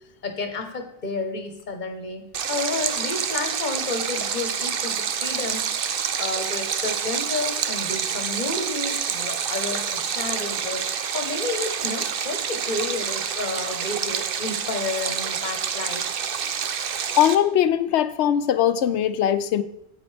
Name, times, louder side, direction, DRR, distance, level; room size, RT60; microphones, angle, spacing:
voice 1, 0.2-5.7 6.2-16.2, left 3 dB, 45° left, 5 dB, 1.2 m, -31 dB
Stream, 2.3-17.4, right 7 dB, 60° right, 0.8 m, -27 dB
voice 2, 17.2-19.6, left 10 dB, 80° left, 12 dB, 0.9 m, -20 dB
9.1 x 8.4 x 3.3 m, 0.81 s
omnidirectional pair, 1.1 m